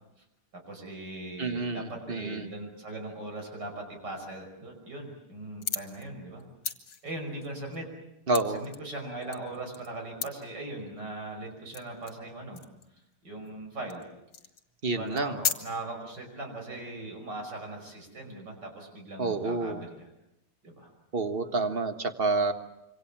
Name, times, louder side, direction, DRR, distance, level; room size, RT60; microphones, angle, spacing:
voice 1, 0.5-6.4 7.0-7.9 8.5-12.6 13.2-14.0 14.9-20.0 20.6-20.9, right 2 dB, 50° right, 3 dB, 6.3 m, -40 dB
voice 2, 1.4-2.5 8.3-8.7 14.8-15.4 19.2-19.9 21.1-22.5, right 3 dB, 30° right, 9 dB, 1.4 m, -29 dB
sound 1, 5.5-6.1 6.4-8.8 9.1-9.9 10.2-10.4 11.0-11.1 11.7-12.2 12.5-12.9 13.5-13.6 13.9-14.0 14.3-14.7 15.1-15.5, left 7 dB, 60° left, 2.4 m, -35 dB
26.5 x 25.0 x 7.4 m, 0.88 s
omnidirectional pair, 2.4 m